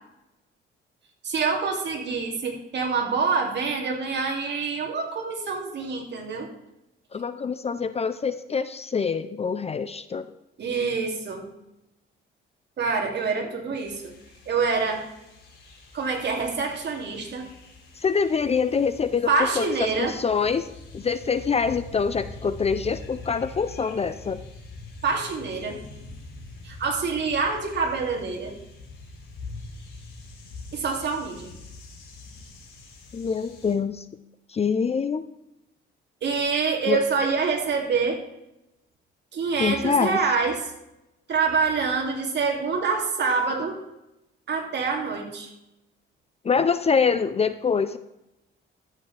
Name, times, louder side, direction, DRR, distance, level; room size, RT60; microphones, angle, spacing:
voice 1, 1.2-6.5 10.6-11.5 12.8-14.1 14.5-15.1 15.9-17.5 19.3-20.2 25.0-25.8 26.6-28.5 30.7-31.5 36.2-38.2 39.3-40.6 41.3-43.8 44.5-45.5, right 5 dB, 60° right, 1 dB, 2.6 m, -26 dB
voice 2, 7.1-10.3 18.0-20.7 20.9-24.4 33.1-34.0 34.5-35.2 36.9-37.0 39.6-40.2 46.4-48.0, left 5 dB, 30° left, 12 dB, 0.5 m, -25 dB
sound 1, 13.8-33.7, left 3 dB, 75° left, 4.1 m, -44 dB
13.0 x 8.4 x 3.3 m, 0.88 s
cardioid pair, 105°, 21 cm